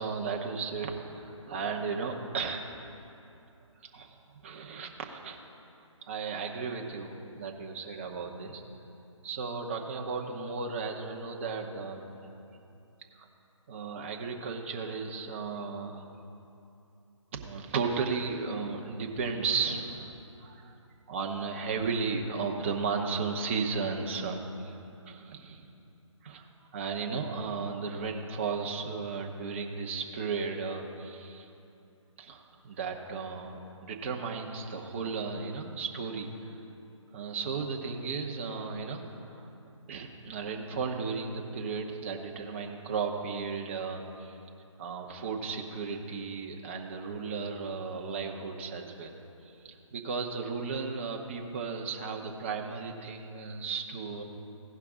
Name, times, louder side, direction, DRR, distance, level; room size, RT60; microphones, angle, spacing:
voice 1, 0.0-2.6 3.9-4.1 4.4-5.4 6.1-8.6 9.2-12.1 13.1-13.3 13.7-16.0 17.3-20.7 21.1-25.7 26.2-26.5 26.7-31.5 32.2-36.6 37.1-39.4 39.9-44.4 44.8-49.1 49.4-54.2, right 5 dB, 25° right, 1 dB, 0.8 m, -35 dB
16.5 x 5.8 x 3.7 m, 2.7 s
figure-of-eight pair, 160°, 17 cm